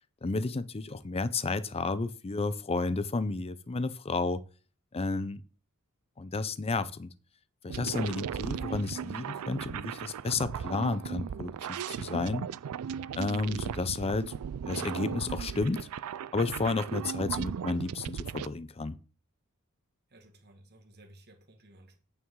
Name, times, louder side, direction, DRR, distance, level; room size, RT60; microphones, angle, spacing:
voice 1, 0.2-4.4 4.9-5.4 6.2-7.1 7.6-12.5 13.2-14.3 14.7-15.9 16.3-19.0, left 3 dB, 25° left, 0.5 m, -32 dB
sound 1, 7.7-18.5, right 8 dB, 75° right, 0.3 m, -37 dB
voice 2, 20.1-22.0, right 1 dB, 50° right, 1.7 m, -56 dB
8.9 x 6.2 x 3.7 m
head